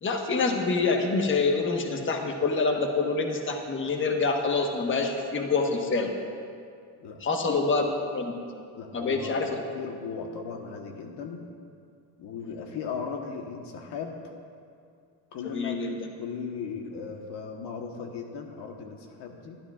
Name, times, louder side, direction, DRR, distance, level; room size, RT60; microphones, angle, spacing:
voice 1, 0.0-6.1 7.2-7.9 8.1-8.3 8.9-9.6 15.4-15.9, left 4 dB, 25° left, 2 dB, 1.3 m, -26 dB
voice 2, 8.8-9.5 9.7-11.4 12.2-14.2 15.3-15.8 16.2-19.6, left 6 dB, 65° left, 3 dB, 1.3 m, -37 dB
21.0 x 12.0 x 2.5 m, 2.4 s
cardioid pair, 115°, 44 cm